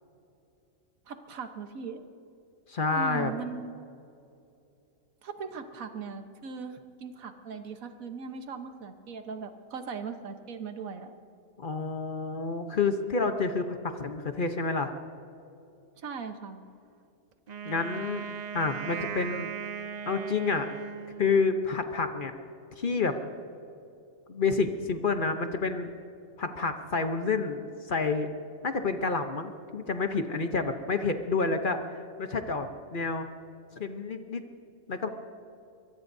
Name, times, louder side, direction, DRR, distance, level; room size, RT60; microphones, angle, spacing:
voice 1, 1.1-2.0 2.9-3.7 5.2-11.1 16.0-16.6, right 5 dB, 85° right, 7 dB, 1.5 m, -39 dB
voice 2, 2.7-3.3 11.6-14.9 17.6-18.2 18.5-19.5 20.1-20.7 21.2-22.3 22.8-23.2 24.3-25.9 26.4-27.6 27.9-28.3 28.6-33.3 33.8-34.4 34.9-35.1, left 4 dB, 45° left, 7 dB, 0.9 m, -29 dB
Wind instrument woodwind instrument, 17.5-21.7, right 6 dB, 50° right, 0.5 m, -38 dB
24.0 x 23.0 x 2.7 m, 2.7 s
omnidirectional pair, 1.4 m